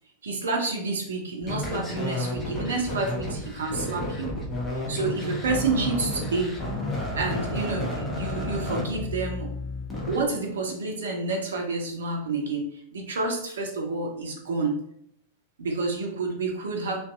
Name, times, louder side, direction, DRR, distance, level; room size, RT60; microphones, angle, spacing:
voice 1, 0.2-4.3 4.9-6.6 7.1-9.5 10.1-14.7 15.6-17.0, right 3 dB, 65° right, 2 dB, 0.4 m, -29 dB
sound 1, 1.4-10.2, left 1 dB, 15° left, 0.7 m, -31 dB
2.6 x 2.2 x 2.3 m, 0.69 s
figure-of-eight pair, 90°, 0 cm